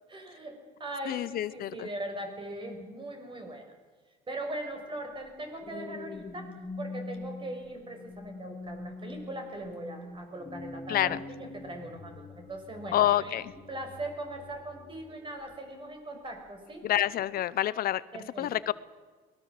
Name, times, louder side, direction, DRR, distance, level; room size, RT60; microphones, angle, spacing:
voice 1, 0.1-3.6 4.3-16.8 18.1-18.6, right 1 dB, 30° right, 4 dB, 6.4 m, -40 dB
voice 2, 1.1-1.9 10.9-11.2 12.9-13.4 16.8-18.0 18.4-18.7, left 13 dB, 60° left, 17 dB, 0.8 m, -27 dB
sound 1, 5.2-15.7 16.3-16.6, left 3 dB, 25° left, 1.7 m, -44 dB
23.5 x 20.0 x 7.7 m, 1.5 s
cardioid pair, 110°, 17 cm